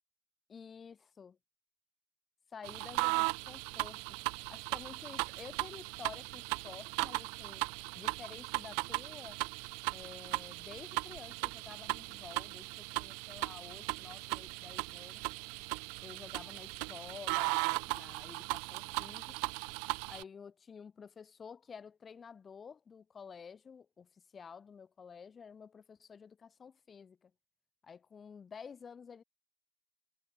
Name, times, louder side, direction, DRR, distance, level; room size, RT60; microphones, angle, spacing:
voice 1, 0.5-1.4 2.5-4.2 4.5-7.7 7.9-9.4 9.9-15.3 16.0-19.5 20.1-27.3 27.8-29.2, left 6 dB, 25° left, 6.7 m, -51 dB
sound 1, 2.6-20.2, right 37 dB, 75° right, 1.2 m, -37 dB
cardioid pair, 150°, 0 cm